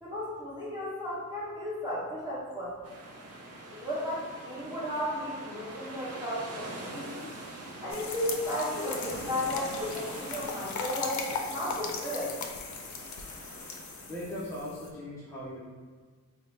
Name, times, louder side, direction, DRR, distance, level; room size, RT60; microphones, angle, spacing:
voice 1, 0.0-2.7 3.7-7.3 7.8-12.4, left 1 dB, 15° right, -8 dB, 1.2 m, -34 dB
sound 1, 2.8-14.4, right 1 dB, 55° right, 0.6 m, -43 dB
sound 2, 7.9-14.9, left 4 dB, 75° left, 0.5 m, -38 dB
voice 2, 14.1-15.6, left 1 dB, 10° left, -10 dB, 0.6 m, -39 dB
4.3 x 2.0 x 3.2 m, 1.6 s
wide cardioid pair, 160°, 30 cm